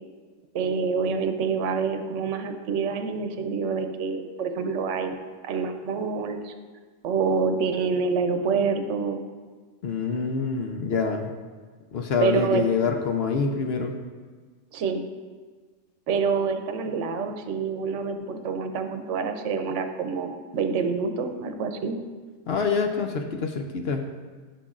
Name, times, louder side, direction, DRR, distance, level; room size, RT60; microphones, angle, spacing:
voice 1, 0.5-5.1 5.4-6.5 7.0-9.2 12.2-12.6 14.7-15.0 16.1-21.9, right 5 dB, 70° right, 6 dB, 1.0 m, -27 dB
voice 2, 9.8-11.3 11.9-13.9 22.5-24.0, left 5 dB, 60° left, 4 dB, 0.8 m, -26 dB
14.0 x 5.9 x 2.4 m, 1.5 s
omnidirectional pair, 1.3 m